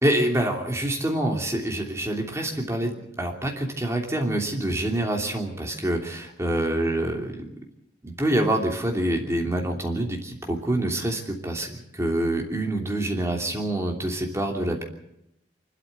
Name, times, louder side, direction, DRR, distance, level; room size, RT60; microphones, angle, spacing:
voice 1, 0.0-7.4 8.0-14.8, right 1 dB, 15° right, 1 dB, 2.9 m, -26 dB
24.5 x 13.0 x 8.2 m, 0.79 s
head